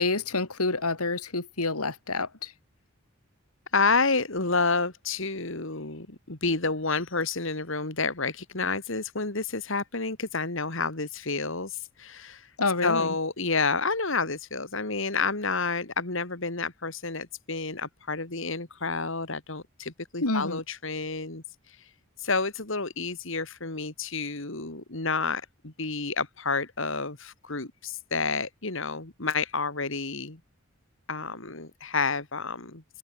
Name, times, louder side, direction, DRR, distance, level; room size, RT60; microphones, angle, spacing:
voice 1, 0.0-2.5 12.6-13.1 20.2-20.6, left 3 dB, 85° left, 3.1 m, -28 dB
voice 2, 3.7-12.5 12.8-21.9 22.2-30.4 31.1-33.0, left 4 dB, 60° left, 2.4 m, -29 dB
head